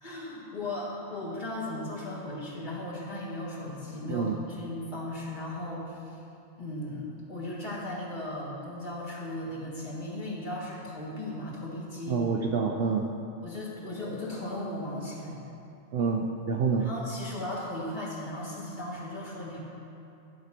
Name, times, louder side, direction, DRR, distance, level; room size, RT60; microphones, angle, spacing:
voice 1, 0.0-6.2 6.6-12.2 13.4-15.4 16.8-19.6, left 1 dB, 35° left, -6 dB, 1.8 m, -37 dB
voice 2, 12.1-13.0 15.9-16.9, right 5 dB, 60° right, 1 dB, 0.6 m, -27 dB
11.0 x 4.7 x 5.8 m, 2.7 s
omnidirectional pair, 1.4 m